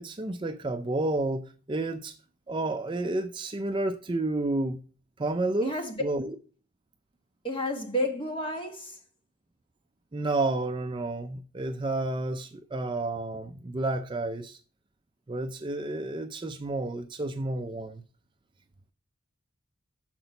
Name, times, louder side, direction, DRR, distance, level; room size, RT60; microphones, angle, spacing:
voice 1, 0.0-2.2 2.5-4.8 5.2-5.7 6.0-6.3 10.1-14.6 15.3-18.0, right 2 dB, 25° right, 0.4 m, -30 dB
voice 2, 5.6-6.0 7.4-9.0, equal, 25° left, 1.5 m, -31 dB
6.7 x 6.0 x 5.2 m
head